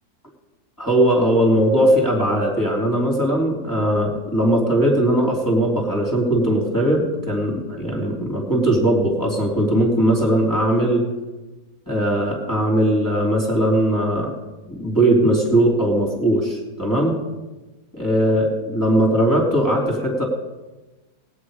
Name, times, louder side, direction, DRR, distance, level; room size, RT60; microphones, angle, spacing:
voice 1, 0.8-11.1 11.9-14.3 14.7-17.2 18.0-20.2, right 1 dB, 10° left, -2 dB, 3.0 m, -19 dB
20.5 x 8.9 x 4.9 m, 1.2 s
omnidirectional pair, 1.7 m